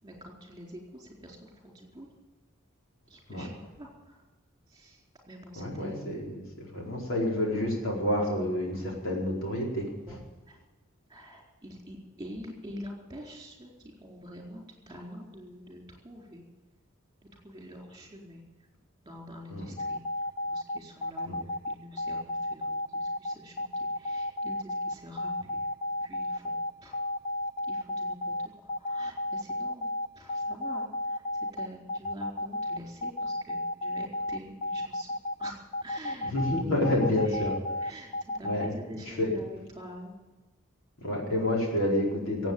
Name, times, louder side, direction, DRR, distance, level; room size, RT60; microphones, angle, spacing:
voice 1, 0.0-2.1 3.1-4.2 4.7-5.0 5.3-6.0 10.1-10.2 10.5-10.6 11.1-16.4 17.4-18.4 19.0-20.0 20.4-25.7 26.0-26.6 26.8-27.0 27.7-28.3 28.8-35.1 35.4-36.3 36.9-37.4 37.8-40.1, equal, 20° right, 0 dB, 4.3 m, -46 dB
voice 2, 5.6-10.2 19.5-19.7 21.2-21.3 36.2-37.5 38.4-38.7 39.1-39.4 41.0-42.5, left 1 dB, 70° left, -2 dB, 4.6 m, -29 dB
sound 1, 19.8-38.7, left 1 dB, 35° left, 0.5 m, -32 dB
16.5 x 8.6 x 8.7 m, 1.2 s
head